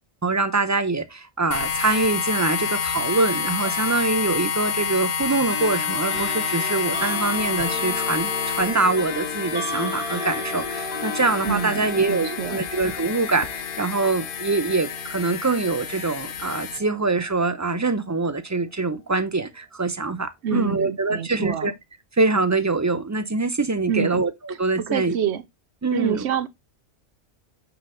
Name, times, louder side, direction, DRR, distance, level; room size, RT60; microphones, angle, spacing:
voice 1, 0.2-21.7 22.2-25.1 25.8-26.2, right 3 dB, 25° right, 0.4 m, -24 dB
sound 1, 1.5-16.8, left 7 dB, 90° left, 1.1 m, -29 dB
sound 2, 3.6-3.8 5.5-18.3, left 2 dB, 5° right, 2.1 m, -35 dB
voice 2, 11.4-12.6 20.4-21.7 23.9-25.4 25.9-26.5, right 8 dB, 65° right, 0.9 m, -27 dB
7.6 x 3.9 x 3.8 m
omnidirectional pair, 1.3 m